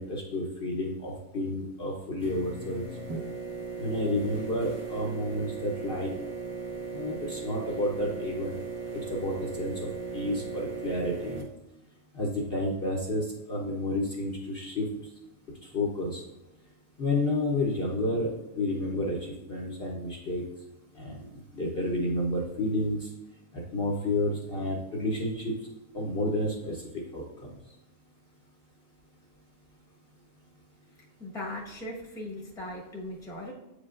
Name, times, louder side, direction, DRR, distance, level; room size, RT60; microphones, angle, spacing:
voice 1, 0.0-2.9 3.8-6.1 6.9-8.6 8.9-11.4 12.1-14.9 15.7-16.2 17.0-18.3 18.5-20.4 21.0-23.1 23.7-25.5 25.9-26.8 27.1-27.5, left 1 dB, 45° left, -3 dB, 1.0 m, -30 dB
sound 1, 2.2-11.4, right 5 dB, 25° right, 0.8 m, -37 dB
voice 2, 31.2-33.5, left 1 dB, 5° left, -3 dB, 1.0 m, -38 dB
8.3 x 5.0 x 2.5 m, 0.98 s
omnidirectional pair, 1.5 m